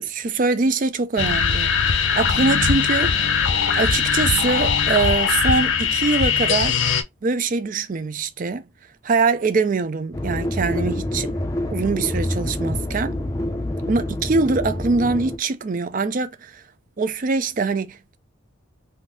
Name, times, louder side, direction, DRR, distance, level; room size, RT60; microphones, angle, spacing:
voice 1, 0.0-3.3 3.7-6.8 7.2-8.6 9.0-11.3 11.7-13.2 13.9-16.6 17.0-18.2, right 4 dB, 40° right, 0.4 m, -23 dB
sound 1, 1.2-7.0, left 6 dB, 70° left, 0.6 m, -20 dB
sound 2, 10.1-15.4, left 1 dB, 15° left, 0.5 m, -27 dB
3.5 x 2.7 x 2.6 m
head